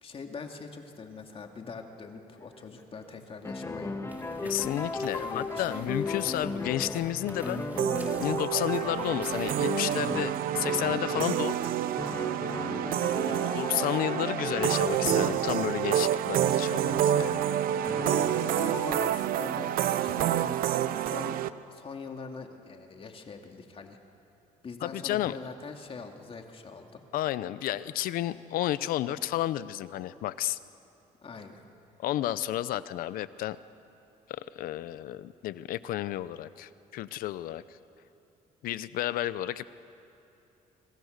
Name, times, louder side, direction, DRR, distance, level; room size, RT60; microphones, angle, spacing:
voice 1, 0.0-3.9 5.2-6.5 11.1-11.5 13.2-13.7 18.6-24.0 24.6-27.0 31.2-31.6, left 4 dB, 40° left, 4 dB, 2.4 m, -43 dB
sound 1, 2.4-3.1 3.4-11.5 12.0-15.6 17.2-17.4 17.8-19.1, left 3 dB, 20° left, 1.7 m, -36 dB
sound 2, 4.1-9.7, right 1 dB, 10° right, 3.9 m, -47 dB
voice 2, 4.4-7.9 8.2-11.7 13.5-17.4 24.8-25.3 27.1-30.6 32.0-33.6 34.3-37.8 38.6-39.6, left 13 dB, 80° left, 16 dB, 0.8 m, -32 dB
sound 3, 7.8-21.5, right 11 dB, 80° right, 0.8 m, -28 dB
26.5 x 25.5 x 6.7 m, 2.8 s
cardioid pair, 100°, 15 cm